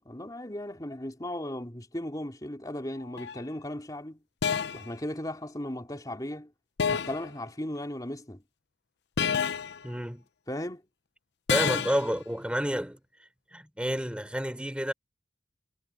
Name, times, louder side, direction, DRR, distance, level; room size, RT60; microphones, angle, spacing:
voice 1, 0.0-4.2 4.7-6.5 6.9-8.4 10.5-10.8, left 1 dB, 20° left, 3.3 m, -36 dB
sound 1, 3.2-3.4 4.4-4.9 6.8-7.3 9.2-9.8 11.5-12.1, left 7 dB, 75° left, 0.6 m, -28 dB
voice 2, 9.8-10.2 11.5-13.0 13.5-14.9, equal, 5° right, 3.6 m, -30 dB
head